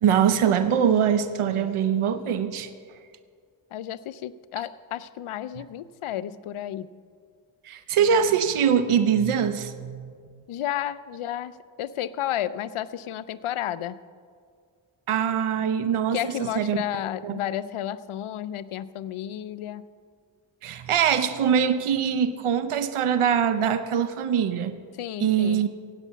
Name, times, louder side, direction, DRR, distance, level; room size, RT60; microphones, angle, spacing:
voice 1, 0.0-2.7 7.6-10.1 15.1-16.8 17.2-17.4 20.6-24.8 25.2-25.7, right 8 dB, 85° right, 11 dB, 0.7 m, -23 dB
voice 2, 1.4-1.7 3.7-6.9 10.5-11.5 11.8-14.0 16.1-19.8 25.0-25.7, left 11 dB, 85° left, 16 dB, 0.6 m, -32 dB
16.5 x 8.2 x 5.7 m, 2.1 s
cardioid pair, 65°, 49 cm